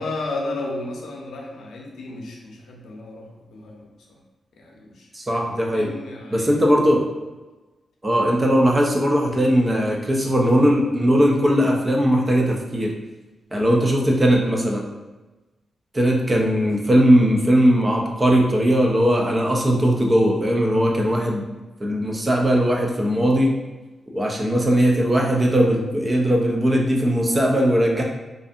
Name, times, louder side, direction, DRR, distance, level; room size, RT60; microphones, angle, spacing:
voice 1, 0.0-4.2 4.6-5.1 5.7-6.6 16.6-16.9, left 2 dB, 85° left, -1 dB, 0.5 m, -33 dB
voice 2, 5.1-5.9 6.3-7.1 8.0-12.9 13.5-14.8 15.9-21.4 21.8-23.5 24.1-28.0, equal, 20° right, -1 dB, 0.3 m, -19 dB
2.5 x 2.4 x 2.4 m, 1.2 s
wide cardioid pair, 175°, 0 cm